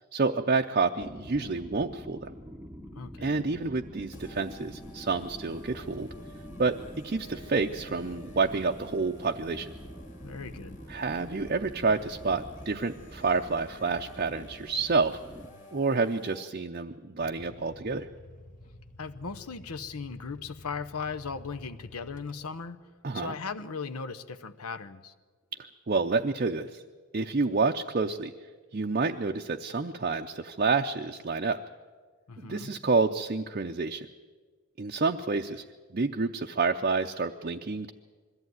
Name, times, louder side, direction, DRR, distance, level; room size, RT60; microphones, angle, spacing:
voice 1, 0.1-2.3 3.2-6.1 6.6-6.7 7.0-9.7 10.9-15.2 15.7-18.1 23.0-23.4 25.9-26.8 27.1-28.3 28.7-31.6 32.4-34.1 34.8-35.6 35.9-37.9, right 4 dB, 40° right, 3 dB, 0.5 m, -28 dB
sound 1, 1.0-15.4, equal, 5° right, 0.8 m, -46 dB
voice 2, 2.9-3.5 10.2-10.8 19.0-22.8 23.1-25.1 32.3-32.7, left 5 dB, 85° left, 11 dB, 0.9 m, -38 dB
sound 2, 4.1-16.5, equal, 55° left, 2.4 m, -51 dB
sound 3, 17.2-22.7, left 1 dB, 35° left, 1.3 m, -51 dB
21.5 x 14.5 x 9.4 m, 1.5 s
head